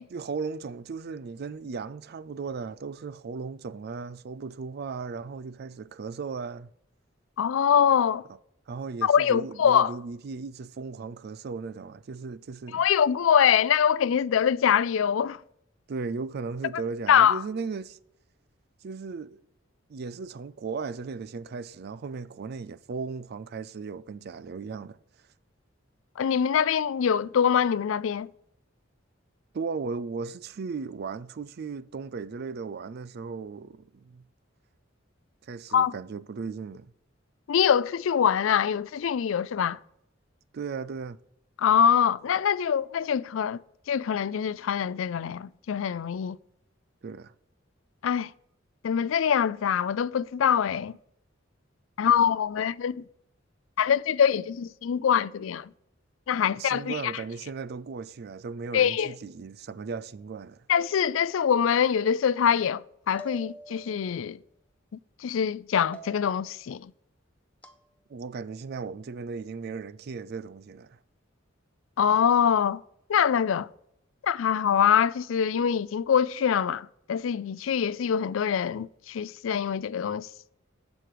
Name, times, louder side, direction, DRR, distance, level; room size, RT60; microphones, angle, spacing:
voice 1, 0.1-6.7 8.7-12.8 15.9-18.0 18.8-19.4 19.9-25.0 29.5-34.3 35.4-36.9 40.5-41.2 47.0-47.3 56.6-60.7 68.1-71.0, right 4 dB, 55° right, 0.4 m, -36 dB
voice 2, 7.4-8.2 9.0-9.9 12.7-15.4 17.1-17.4 26.2-28.3 35.7-35.9 37.5-39.8 41.6-43.6 43.9-46.4 48.0-48.3 48.8-50.9 52.0-53.0 53.8-55.7 56.3-57.1 58.7-59.1 60.7-64.4 65.2-66.9 72.0-72.8 73.1-73.7 74.2-80.3, left 8 dB, 85° left, 0.4 m, -24 dB
sound 1, 60.8-61.6 63.2-64.1 65.9-66.6 67.6-67.8, equal, 5° left, 0.7 m, -46 dB
7.6 x 6.3 x 6.7 m
head